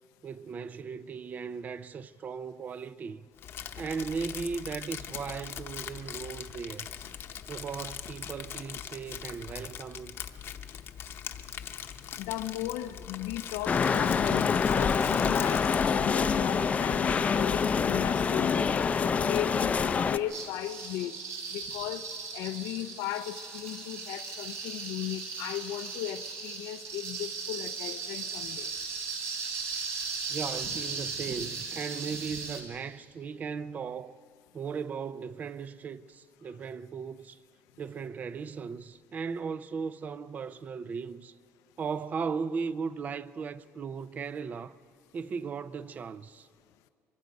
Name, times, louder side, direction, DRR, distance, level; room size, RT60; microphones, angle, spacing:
voice 1, 0.2-3.2 3.8-6.9 7.5-10.1 30.3-34.2 34.5-37.4 37.8-41.3 41.8-44.8 45.1-46.5, right 5 dB, 30° right, 0.5 m, -37 dB
Crumpling crinkling, 3.4-16.0, left 9 dB, 45° left, 0.9 m, -41 dB
voice 2, 12.2-18.7 19.0-21.2 21.5-22.1 22.3-28.7, left 13 dB, 90° left, 0.5 m, -36 dB
sound 1, 13.7-20.2, left 6 dB, 25° left, 0.5 m, -26 dB
sound 2, 20.3-32.6, right 5 dB, 60° right, 3.4 m, -37 dB
23.5 x 23.0 x 5.2 m
cardioid pair, 145°, 5 cm